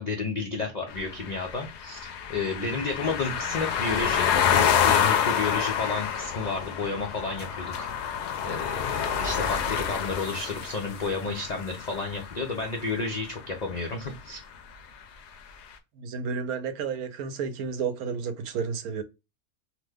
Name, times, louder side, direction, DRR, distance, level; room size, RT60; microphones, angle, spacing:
voice 1, 0.0-7.9 8.4-14.4, left 4 dB, 85° left, 0.3 m, -31 dB
sound 1, 0.9-12.9, left 8 dB, 65° left, 0.7 m, -28 dB
voice 2, 15.9-19.0, right 6 dB, 85° right, 1.1 m, -31 dB
2.9 x 2.1 x 3.3 m
omnidirectional pair, 1.5 m